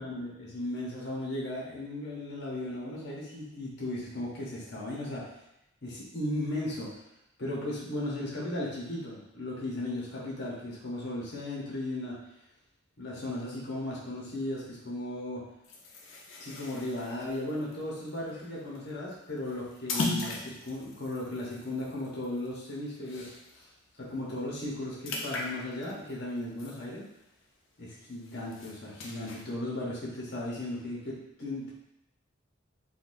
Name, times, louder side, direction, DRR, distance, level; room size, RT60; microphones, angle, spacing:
voice 1, 0.0-5.3 5.8-6.9 7.4-12.2 13.0-15.5 16.4-23.3 23.5-23.6 24.0-27.0 27.8-31.7, left 1 dB, 55° left, -5 dB, 1.0 m, -36 dB
sound 1, 15.6-23.6 24.0-24.2 24.5-27.4 27.8-29.4, left 3 dB, 75° left, 0.6 m, -39 dB
4.0 x 2.4 x 2.6 m, 0.86 s
head